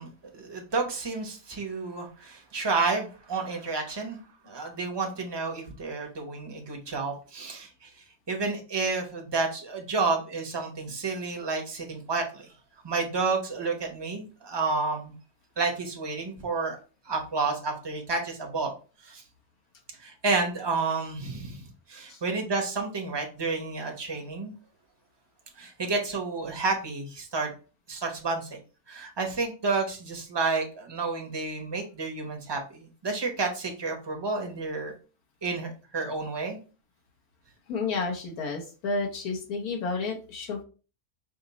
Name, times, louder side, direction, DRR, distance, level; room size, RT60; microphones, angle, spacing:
voice 1, 0.0-4.2 4.5-7.9 8.3-12.5 12.8-15.1 15.6-16.8 17.1-18.7 19.0-19.2 20.0-24.5 25.6-27.5 27.9-28.6 28.9-34.9 35.4-36.6, right 3 dB, 25° right, 2 dB, 0.6 m, -30 dB
voice 2, 37.7-40.6, left 3 dB, 75° left, 0 dB, 1.3 m, -31 dB
5.0 x 2.0 x 3.8 m, 0.35 s
omnidirectional pair, 1.6 m